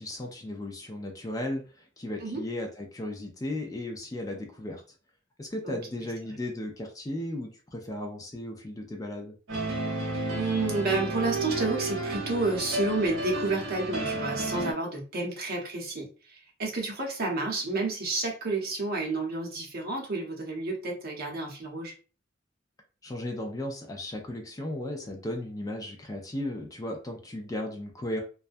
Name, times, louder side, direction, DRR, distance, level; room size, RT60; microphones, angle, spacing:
voice 1, 0.0-4.8 5.4-9.3 23.0-28.2, left 1 dB, 20° left, 2 dB, 0.4 m, -35 dB
voice 2, 5.6-6.1 10.3-21.9, right 3 dB, 50° right, -1 dB, 0.8 m, -30 dB
sound 1, 9.5-14.7, right 2 dB, 90° right, 0.8 m, -32 dB
2.3 x 2.1 x 2.5 m, 0.36 s
head